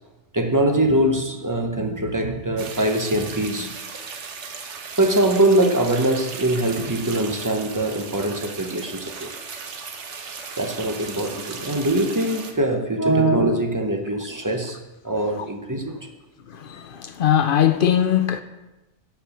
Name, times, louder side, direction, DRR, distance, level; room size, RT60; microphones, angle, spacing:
voice 1, 0.3-3.7 5.0-9.3 10.6-14.8 15.0-16.1, right 1 dB, 20° right, 0.7 m, -22 dB
sound 1, 2.6-12.5, right 5 dB, 75° right, 1.2 m, -36 dB
voice 2, 16.5-18.4, left 9 dB, 55° left, 0.7 m, -20 dB
10.5 x 4.8 x 7.0 m
omnidirectional pair, 1.2 m